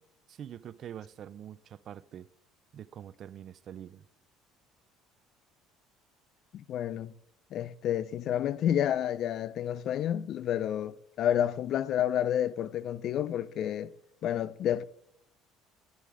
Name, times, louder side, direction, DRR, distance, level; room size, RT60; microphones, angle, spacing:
voice 1, 0.3-2.3 2.7-4.1, right 10 dB, 50° right, 0.4 m, -45 dB
voice 2, 6.5-7.1 7.5-13.9 14.2-14.8, left 10 dB, 55° left, 0.4 m, -30 dB
10.0 x 9.3 x 3.6 m
supercardioid pair, 105°, 0 cm